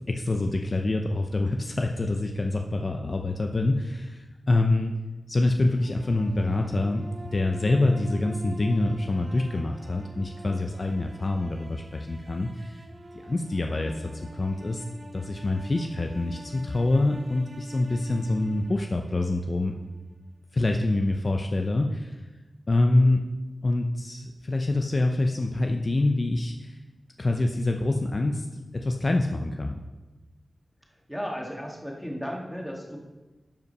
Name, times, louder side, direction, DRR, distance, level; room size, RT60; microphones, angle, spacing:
voice 1, 0.1-4.9 5.3-7.1 7.3-12.8 13.1-14.8 15.1-19.7 20.5-22.3 22.7-23.3 23.6-26.8 27.2-28.5 28.7-29.8, left 2 dB, 40° left, 3 dB, 0.6 m, -26 dB
sound 1, 5.7-19.8, right 1 dB, 45° right, 1.0 m, -45 dB
voice 2, 31.1-33.0, equal, ahead, -1 dB, 1.9 m, -34 dB
12.0 x 5.5 x 5.4 m, 1.2 s
wide cardioid pair, 105°, 0 cm